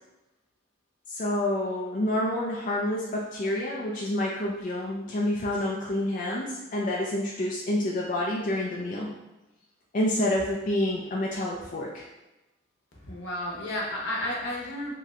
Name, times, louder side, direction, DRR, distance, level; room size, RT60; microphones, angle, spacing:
voice 1, 1.1-9.2 9.9-12.0, left 1 dB, 45° left, -4 dB, 0.4 m, -28 dB
voice 2, 12.9-14.9, left 1 dB, 80° left, -3 dB, 0.8 m, -32 dB
3.1 x 2.7 x 2.5 m, 0.99 s
head